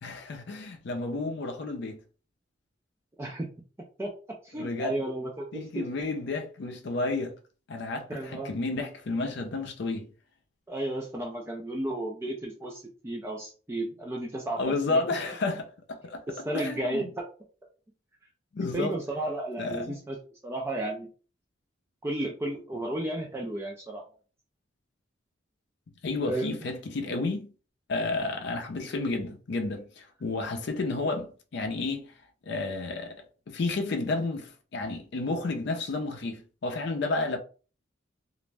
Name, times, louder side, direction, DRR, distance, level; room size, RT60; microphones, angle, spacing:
voice 1, 0.0-2.0 4.5-5.0 5.5-7.3 7.7-10.1 14.6-16.2 16.5-17.1 18.5-19.0 19.6-20.0 26.0-27.5 27.9-32.1 32.5-33.2 33.5-37.4, left 3 dB, 60° left, 0.5 m, -31 dB
voice 2, 3.2-3.5 4.0-4.1 4.4-5.8 8.1-8.5 10.7-15.0 16.3-17.3 18.7-20.2 20.4-21.1 22.0-24.0 26.3-26.5, right 1 dB, 15° right, 0.4 m, -33 dB
2.5 x 2.0 x 3.2 m
head